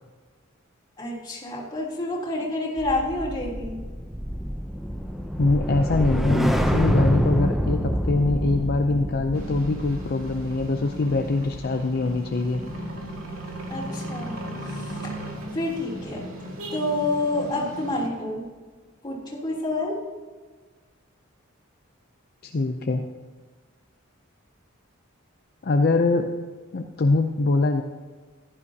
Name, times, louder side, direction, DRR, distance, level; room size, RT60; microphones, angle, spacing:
voice 1, 1.0-3.8 13.7-15.1 15.5-16.3 16.7-18.5 19.0-20.0, left 2 dB, 20° left, -6 dB, 3.2 m, -28 dB
sound 1, 2.8-13.2 13.5-13.8, equal, ahead, 0.5 m, -27 dB
voice 2, 5.4-12.6 22.4-23.0 25.6-26.3 26.7-27.8, left 3 dB, 45° left, 5 dB, 0.5 m, -23 dB
sound 2, 9.3-18.1, right 1 dB, 80° right, 2.2 m, -36 dB
15.0 x 11.0 x 2.8 m, 1.4 s
head